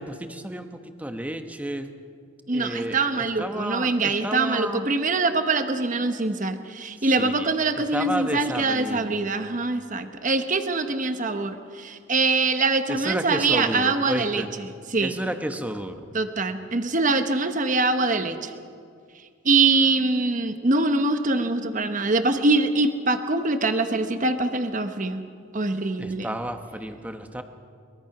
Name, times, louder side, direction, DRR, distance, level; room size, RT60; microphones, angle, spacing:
voice 1, 0.0-1.9 2.5-4.9 7.0-9.1 12.9-14.5 15.0-16.0 26.0-27.4, right 1 dB, 5° right, 7 dB, 1.1 m, -32 dB
voice 2, 2.5-15.1 16.1-18.5 19.4-25.2 25.5-26.3, right 3 dB, 40° right, 8 dB, 1.2 m, -24 dB
23.0 x 22.0 x 6.0 m, 2.2 s
head